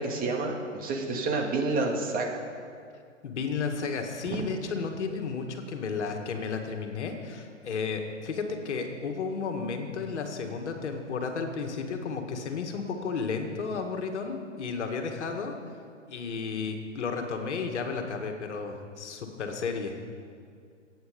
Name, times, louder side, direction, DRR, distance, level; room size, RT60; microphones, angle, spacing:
voice 1, 0.0-2.3, right 3 dB, 25° right, 1 dB, 2.0 m, -29 dB
voice 2, 3.2-15.5 16.1-19.9, left 5 dB, 65° left, 4 dB, 2.0 m, -33 dB
24.0 x 9.1 x 5.3 m, 2.3 s
figure-of-eight pair, 115°, 38 cm